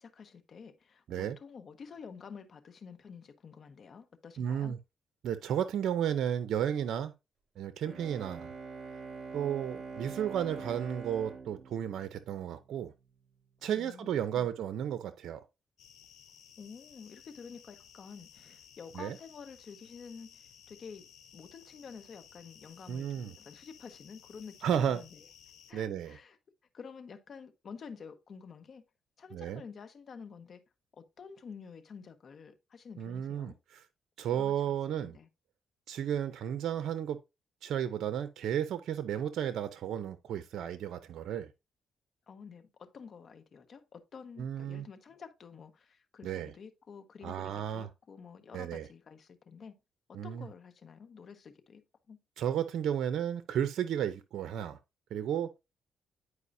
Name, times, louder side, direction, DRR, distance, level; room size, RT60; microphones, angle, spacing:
voice 1, 0.0-4.8 13.7-14.5 16.6-21.1 21.3-25.2 25.7-26.4 26.7-28.8 29.2-30.6 31.0-33.6 34.3-35.3 42.3-49.7 50.1-52.2, left 6 dB, 50° left, 1.1 m, -50 dB
voice 2, 4.4-4.8 5.2-7.1 7.6-8.5 9.3-12.9 13.6-15.4 18.9-19.2 22.9-23.3 24.6-25.0 25.7-26.2 29.3-29.6 33.0-33.8 34.2-35.2 35.9-37.2 37.6-41.5 44.4-44.9 46.2-46.5 47.2-47.9 48.5-48.9 50.1-50.5 52.4-54.8 55.1-55.5, right 9 dB, 75° right, 0.5 m, -33 dB
Bowed string instrument, 7.8-12.8, right 4 dB, 40° right, 2.1 m, -44 dB
sound 1, 15.8-25.7, left 8 dB, 75° left, 1.0 m, -57 dB
9.8 x 4.7 x 2.6 m
cardioid pair, 90°, 0 cm